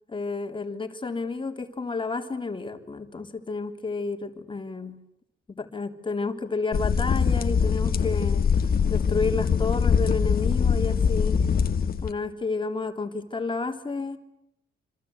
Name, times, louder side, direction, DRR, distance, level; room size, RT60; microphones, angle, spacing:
voice 1, 0.1-4.9 5.6-11.4 12.0-14.2, left 4 dB, 25° left, 5 dB, 3.5 m, -31 dB
sound 1, 6.7-12.1, left 6 dB, 50° left, 1.9 m, -23 dB
26.5 x 26.0 x 8.3 m, 0.83 s
cardioid pair, 90°, 20 cm